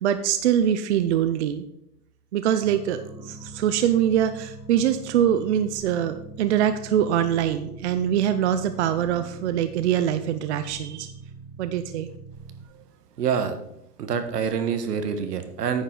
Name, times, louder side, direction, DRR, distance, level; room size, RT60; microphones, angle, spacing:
voice 1, 0.0-1.7 2.3-11.1 11.6-12.1, right 10 dB, 45° right, 10 dB, 0.6 m, -23 dB
sound 1, 2.6-12.6, right 3 dB, 5° right, 1.5 m, -42 dB
voice 2, 13.2-13.6 14.0-15.8, right 7 dB, 80° right, 8 dB, 1.4 m, -26 dB
9.5 x 6.7 x 3.8 m, 0.79 s
hypercardioid pair, 150°, 47 cm